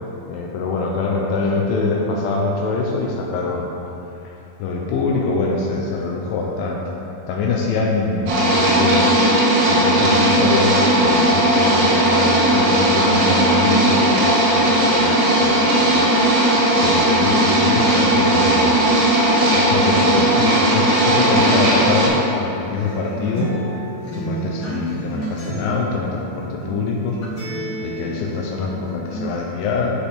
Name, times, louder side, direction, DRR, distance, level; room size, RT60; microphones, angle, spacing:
voice 1, 0.3-3.7 4.2-4.3 4.6-6.8 7.3-9.1 9.6-15.9 16.8-18.8 19.4-23.6 24.1-27.2 27.8-30.1, left 4 dB, 80° left, -1 dB, 2.2 m, -24 dB
sound 1, 8.3-22.1, right 1 dB, 90° right, 3.7 m, -16 dB
Acoustic guitar, 21.4-29.4, right 2 dB, 45° left, 2.1 m, -31 dB
10.0 x 5.0 x 4.3 m, 2.9 s
omnidirectional pair, 4.6 m